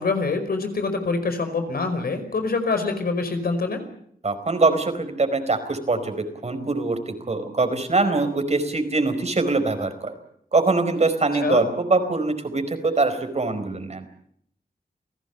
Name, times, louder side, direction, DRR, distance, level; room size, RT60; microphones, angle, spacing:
voice 1, 0.0-3.9 11.4-11.6, left 3 dB, 80° left, 7 dB, 5.1 m, -25 dB
voice 2, 4.2-10.1 10.5-14.0, right 3 dB, 45° right, 8 dB, 4.6 m, -23 dB
29.5 x 17.5 x 8.2 m, 0.68 s
wide cardioid pair, 90°, 15 cm